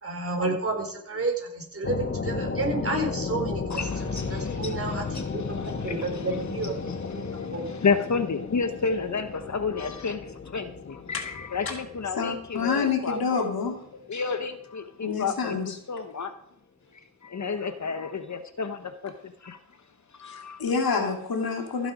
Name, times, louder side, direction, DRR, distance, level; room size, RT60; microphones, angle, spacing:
voice 1, 0.0-3.8 4.3-6.7 7.1-7.6, right 2 dB, 40° right, 1 dB, 4.4 m, -31 dB
sound 1, 1.8-13.7, left 4 dB, 35° left, 1.3 m, -34 dB
voice 2, 3.7-13.4 14.1-15.6 15.9-16.3 17.2-19.6 20.2-20.6, left 5 dB, 55° left, 9 dB, 1.1 m, -31 dB
voice 3, 12.2-13.8 15.0-15.8 20.2-21.9, left 5 dB, 90° left, 3 dB, 2.7 m, -28 dB
15.5 x 8.8 x 5.1 m, 0.73 s
wide cardioid pair, 85°, 35 cm